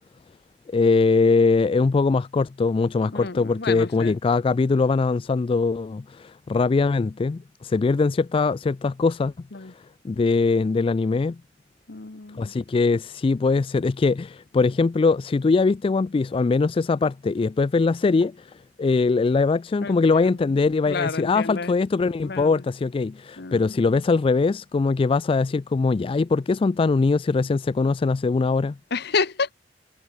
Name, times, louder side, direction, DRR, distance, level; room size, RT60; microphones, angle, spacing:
voice 1, 0.7-9.3 10.0-11.4 12.4-28.8, left 4 dB, 30° left, 0.3 m, -22 dB
voice 2, 3.1-4.2 9.5-9.7 11.9-12.5 19.8-20.4 20.9-21.8 22.2-22.6 23.4-23.7 28.9-29.5, left 4 dB, 65° left, 1.1 m, -30 dB
head